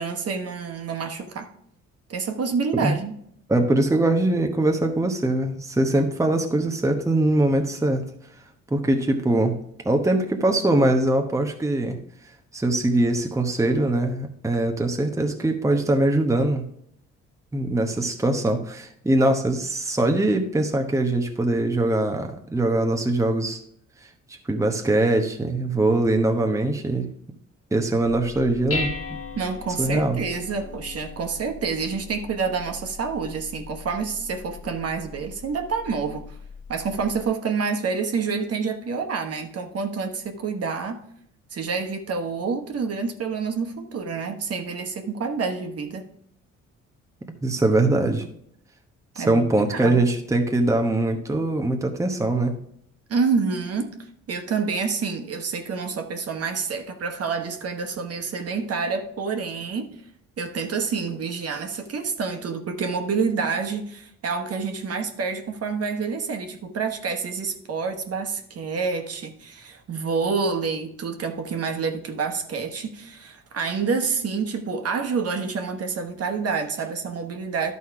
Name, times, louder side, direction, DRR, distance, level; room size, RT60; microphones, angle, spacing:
voice 1, 0.0-1.5 2.1-3.1 29.4-36.4 36.7-41.0 41.5-46.0 49.1-50.0 53.1-53.9 54.3-60.0 60.4-77.7, right 5 dB, 50° right, 5 dB, 1.3 m, -28 dB
voice 2, 3.5-8.0 8.7-9.6 9.8-12.0 12.5-16.7 17.5-23.6 24.5-27.1 27.7-29.2 29.8-30.2 47.4-48.3 49.2-52.5, right 2 dB, 10° right, 4 dB, 1.0 m, -22 dB
Dishes pots and pans, 28.0-37.3, left 4 dB, 50° left, 1.5 m, -38 dB
11.5 x 4.3 x 4.7 m, 0.69 s
cardioid pair, 90°, 30 cm